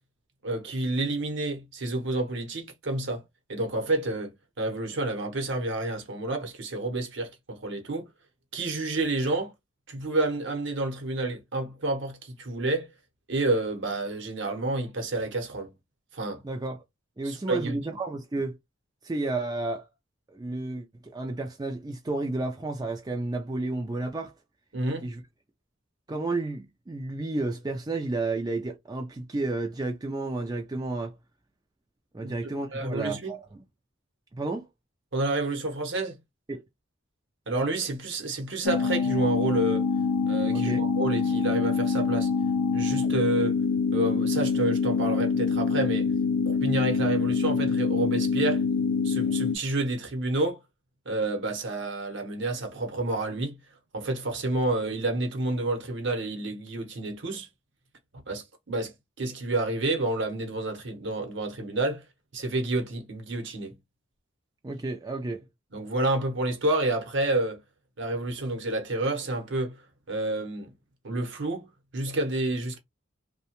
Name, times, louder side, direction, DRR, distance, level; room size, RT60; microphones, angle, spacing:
voice 1, 0.4-3.2 3.5-4.3 4.6-8.1 8.5-9.5 9.9-12.9 13.3-15.7 16.1-16.4 17.2-17.8 24.7-25.1 32.2-32.3 32.7-33.4 35.1-36.2 37.5-39.8 40.3-42.3 42.7-43.5 43.9-46.1 46.4-48.6 49.0-50.6 51.1-53.6 53.9-57.5 58.3-62.0 62.3-63.7 65.7-67.6 68.0-69.8 70.1-70.7 71.0-71.7 71.9-72.8, right 2 dB, 60° right, 0.9 m, -29 dB
voice 2, 16.4-16.8 17.2-18.6 19.0-19.8 20.3-24.3 25.0-25.2 26.1-31.1 32.1-33.4 34.3-34.7 36.5-36.6 40.5-40.8 64.6-65.4, right 2 dB, 20° right, 0.4 m, -31 dB
sound 1, 38.6-49.6, left 5 dB, 90° left, 0.5 m, -25 dB
2.8 x 2.2 x 2.8 m
head